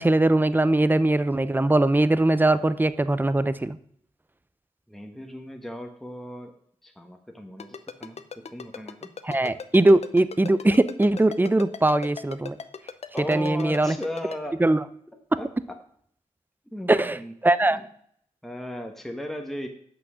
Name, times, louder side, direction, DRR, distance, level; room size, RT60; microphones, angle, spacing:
voice 1, 0.0-3.8 9.2-12.6 13.3-13.9 14.6-14.8 16.9-17.8, right 2 dB, 15° right, 14 dB, 0.6 m, -21 dB
voice 2, 4.9-6.5 6.8-8.2 8.5-9.1 13.1-14.6 15.4-15.5 16.7-17.3 17.7-17.9 18.4-19.7, left 1 dB, ahead, 3 dB, 1.3 m, -36 dB
Ringtone, 7.6-14.4, left 6 dB, 55° left, 0.7 m, -37 dB
6.1 x 6.1 x 6.3 m, 0.65 s
cardioid pair, 50°, 13 cm